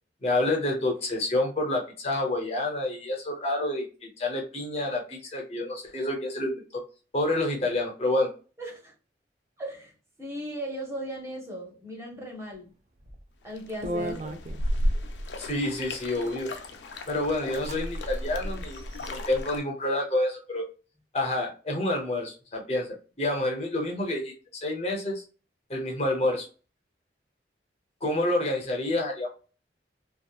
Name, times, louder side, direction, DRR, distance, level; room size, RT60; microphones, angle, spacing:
voice 1, 0.2-6.8 7.1-8.3 15.4-16.5 17.1-18.8 19.1-20.7 21.1-25.2 25.7-26.5 28.0-29.3, left 1 dB, 35° left, 0.6 m, -28 dB
voice 2, 8.6-8.9 9.6-9.9 10.2-12.7 13.4-14.4, equal, 15° right, 0.8 m, -37 dB
sound 1, 13.0-13.2 13.8-15.0 15.9-16.4 16.9-17.0 17.3-17.8 18.1-18.2 18.7-19.4, right 1 dB, 40° right, 0.4 m, -37 dB
sound 2, 13.6-19.6, equal, 80° left, 0.4 m, -33 dB
2.7 x 2.3 x 2.3 m
head